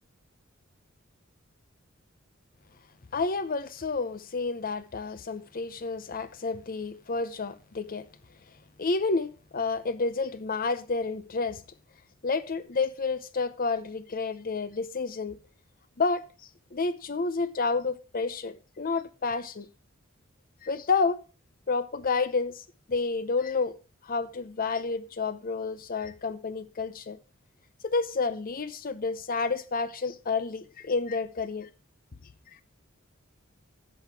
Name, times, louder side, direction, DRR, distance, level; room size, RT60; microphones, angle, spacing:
voice 1, 3.1-8.1 8.8-11.6 12.2-15.4 16.0-16.3 16.7-19.7 20.6-21.2 21.7-22.6 22.9-23.7 24.0-27.2 27.8-31.7, left 4 dB, 45° left, 0.7 m, -30 dB
10.5 x 6.4 x 4.8 m
head